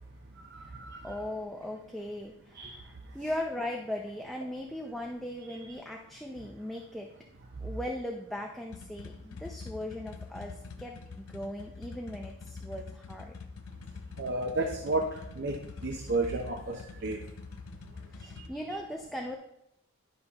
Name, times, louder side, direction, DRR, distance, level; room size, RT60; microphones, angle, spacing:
voice 1, 0.5-1.1 2.6-2.7 5.5-5.6 14.2-15.5 15.8-17.2, right 2 dB, 55° right, 4 dB, 0.7 m, -32 dB
voice 2, 1.0-7.1 7.6-13.4 18.1-19.4, left 1 dB, ahead, 0 dB, 0.5 m, -38 dB
sound 1, 8.7-18.5, left 4 dB, 90° left, 0.6 m, -45 dB
10.5 x 5.6 x 2.9 m, 0.82 s
head